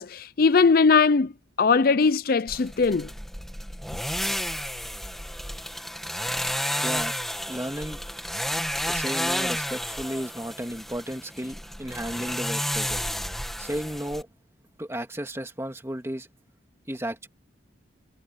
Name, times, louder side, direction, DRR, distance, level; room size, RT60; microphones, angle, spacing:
voice 1, 0.0-1.3 1.6-3.1, left 4 dB, 50° left, 0.5 m, -20 dB
sound 1, 2.5-14.2, equal, ahead, 2.0 m, -31 dB
voice 2, 6.8-7.1 7.5-8.0 8.9-13.0 13.6-14.3 14.8-16.3 16.9-17.3, equal, 15° right, 2.8 m, -33 dB
head